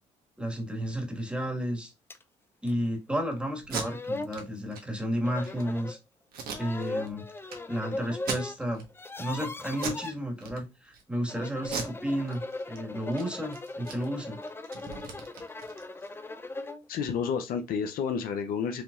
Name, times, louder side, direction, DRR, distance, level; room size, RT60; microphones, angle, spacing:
voice 1, 0.4-1.9 2.6-6.0 6.6-8.8 9.2-14.4, equal, 5° right, 1.8 m, -32 dB
sound 1, 2.1-2.2 2.7-2.8 3.4-3.5 3.7-4.4 5.2-6.0 6.5-8.6 8.8-10.1 11.1-16.8, left 2 dB, 15° left, 0.5 m, -39 dB
Packing tape duct tape, 3.6-3.9 4.3-4.4 4.7-4.8 5.3-5.6 6.3-7.1 7.5-7.6 8.2-8.8 9.2-9.4 9.8-10.1 10.4-11.0 11.6-12.8 13.1-13.2 13.5-16.1, right 5 dB, 70° right, 1.4 m, -38 dB
voice 2, 16.9-18.8, left 6 dB, 65° left, 0.6 m, -30 dB
5.3 x 2.8 x 2.5 m
supercardioid pair, 70°, 16 cm